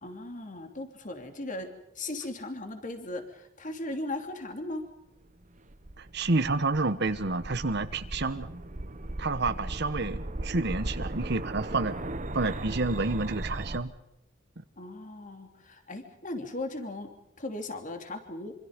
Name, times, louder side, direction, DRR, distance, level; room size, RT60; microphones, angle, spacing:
voice 1, 0.0-4.8 14.8-17.1 17.4-18.5, left 2 dB, 40° left, 6 dB, 3.1 m, -37 dB
sound 1, 5.4-13.8, right 1 dB, 40° right, 1.2 m, -37 dB
voice 2, 6.0-8.5 9.2-12.0 12.3-13.9, right 3 dB, 60° right, 9 dB, 1.2 m, -29 dB
26.5 x 26.0 x 5.3 m, 0.82 s
head